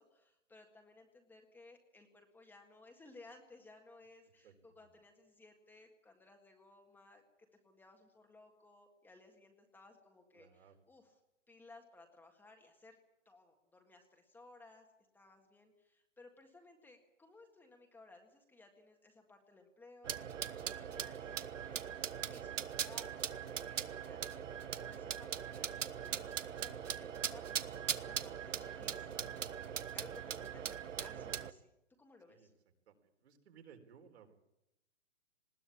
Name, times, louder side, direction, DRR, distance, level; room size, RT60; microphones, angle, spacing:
voice 1, 0.0-7.2 7.6-11.2 11.5-13.0 13.3-14.9 15.1-31.7 32.0-32.5, left 2 dB, 5° left, 3 dB, 1.8 m, -60 dB
voice 2, 10.3-10.8 24.9-25.0 32.3-32.5 32.9-34.3, right 7 dB, 60° right, 5 dB, 4.3 m, -60 dB
sound 1, 20.0-31.5, right 8 dB, 80° right, 1.4 m, -40 dB
20.0 x 18.0 x 8.6 m, 0.87 s
hypercardioid pair, 150°, 37 cm